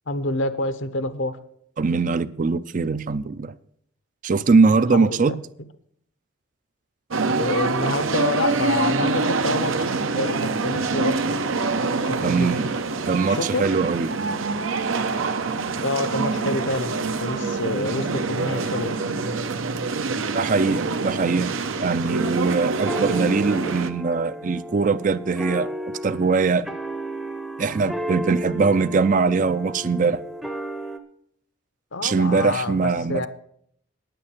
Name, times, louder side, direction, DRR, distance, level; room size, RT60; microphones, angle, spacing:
voice 1, 0.1-1.4 4.9-5.4 7.4-11.4 11.9-12.5 13.3-13.6 15.8-19.0 31.9-33.3, left 2 dB, 70° left, 0.9 m, -27 dB
voice 2, 1.8-3.5 4.2-5.3 12.2-12.7 13.1-14.1 20.3-21.5 21.8-26.7 27.6-30.2 32.0-33.3, right 4 dB, 40° right, 0.4 m, -21 dB
sound 1, 7.1-23.9, right 4 dB, 85° right, 0.8 m, -25 dB
sound 2, 21.5-31.0, equal, ahead, 0.6 m, -34 dB
9.5 x 9.1 x 7.2 m
head